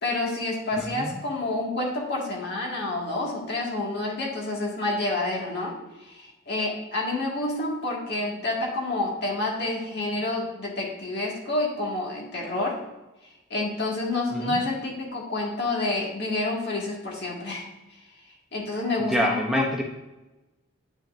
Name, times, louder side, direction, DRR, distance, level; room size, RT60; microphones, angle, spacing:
voice 1, 0.0-12.8 13.5-17.7 18.5-19.6, left 2 dB, 55° left, -2 dB, 1.8 m, -28 dB
voice 2, 0.8-1.2 14.3-14.6 19.1-19.8, equal, ahead, -1 dB, 0.6 m, -26 dB
8.8 x 5.7 x 2.5 m, 1.0 s
head